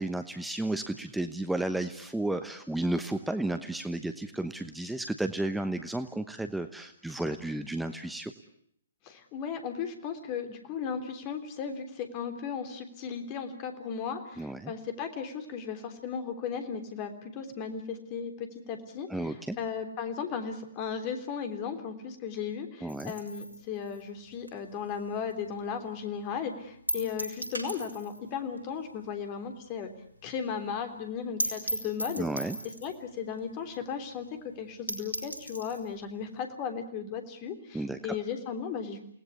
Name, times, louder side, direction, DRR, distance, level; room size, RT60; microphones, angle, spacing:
voice 1, 0.0-8.3 14.4-14.7 19.1-19.6 22.8-23.1 32.2-32.6 37.7-38.0, right 2 dB, 5° right, 8 dB, 1.0 m, -32 dB
voice 2, 9.0-29.9 30.2-32.3 32.8-39.0, left 6 dB, 30° left, 7 dB, 3.4 m, -36 dB
sound 1, 22.9-25.5 25.8-25.9 26.3-26.4 26.9-28.3 28.6-28.7 29.0-29.1 29.4-29.5 29.8-29.9 30.2-30.3 30.6-30.7 31.0-31.1 31.4-33.0 33.7-33.8 34.2-34.3 34.6-34.7 34.9-35.9, right 1 dB, 85° left, 5.2 m, -36 dB
29.0 x 19.0 x 8.3 m, 0.68 s
figure-of-eight pair, 125°, 0 cm